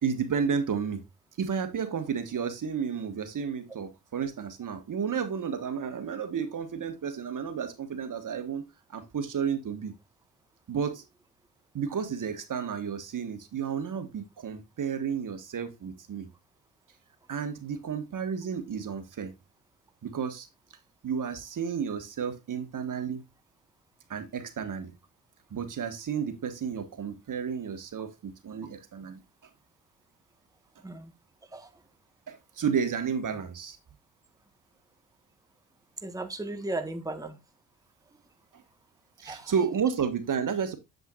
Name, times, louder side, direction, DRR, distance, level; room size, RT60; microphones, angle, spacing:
voice 1, 0.0-1.0 1.4-9.9 10.7-11.0 11.7-16.3 17.3-19.3 20.0-20.5 21.0-23.2 24.1-24.9 25.5-29.2 32.3-33.8 39.2-40.8, right 7 dB, 50° right, 1.6 m, -32 dB
voice 2, 36.0-37.4 39.2-39.5, right 2 dB, 10° right, 1.3 m, -35 dB
7.8 x 7.6 x 2.4 m
supercardioid pair, 55°, 41 cm